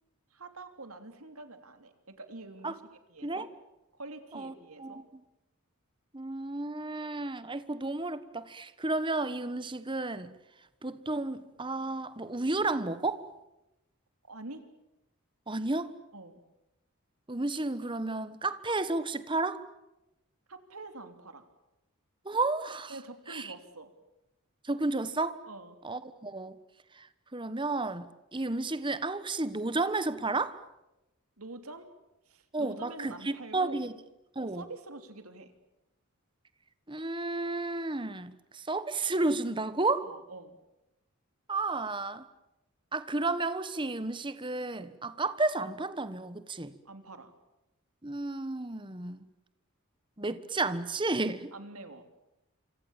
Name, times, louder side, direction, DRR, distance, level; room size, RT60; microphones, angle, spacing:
voice 1, 0.3-2.8 3.1-3.5 3.9-5.0 14.3-14.6 16.1-16.4 20.5-21.4 22.9-23.9 25.5-25.7 31.4-31.9 32.3-33.9 34.4-35.5 40.0-40.6 46.8-47.3 51.5-52.1, right 2 dB, 85° right, 3.3 m, -46 dB
voice 2, 4.8-5.2 6.1-10.3 10.8-13.2 15.5-15.9 17.3-19.6 22.2-23.0 23.3-23.5 24.6-25.4 25.8-26.6 26.9-27.1 27.3-30.6 32.5-33.9 34.3-34.6 36.9-40.1 41.5-42.2 42.9-46.7 48.0-49.3 50.2-51.5, right 2 dB, 20° right, 1.3 m, -32 dB
27.5 x 26.0 x 7.3 m
head